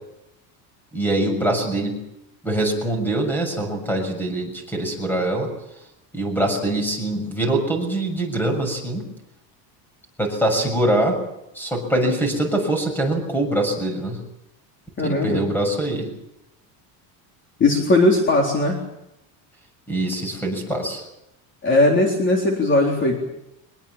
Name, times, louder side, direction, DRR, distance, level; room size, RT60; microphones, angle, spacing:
voice 1, 0.9-2.0 2.4-5.5 6.1-9.0 10.2-11.2 11.5-14.2 15.0-16.1 19.9-21.0, right 1 dB, 5° left, 5 dB, 6.6 m, -23 dB
voice 2, 15.0-15.4 17.6-18.8 21.6-23.2, left 2 dB, 30° left, 1 dB, 3.9 m, -18 dB
24.0 x 22.0 x 7.3 m, 0.86 s
cardioid pair, 155°, 41 cm